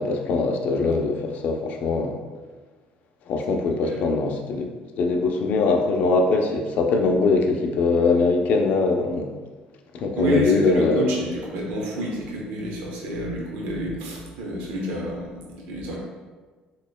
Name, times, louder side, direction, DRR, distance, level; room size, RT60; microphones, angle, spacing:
voice 1, 0.0-2.2 3.3-9.3 9.9-11.1, left 3 dB, 60° left, 4 dB, 0.4 m, -22 dB
voice 2, 10.1-16.0, equal, 90° right, -2 dB, 0.8 m, -29 dB
4.0 x 3.0 x 2.2 m, 1.4 s
cardioid pair, 120°, 3 cm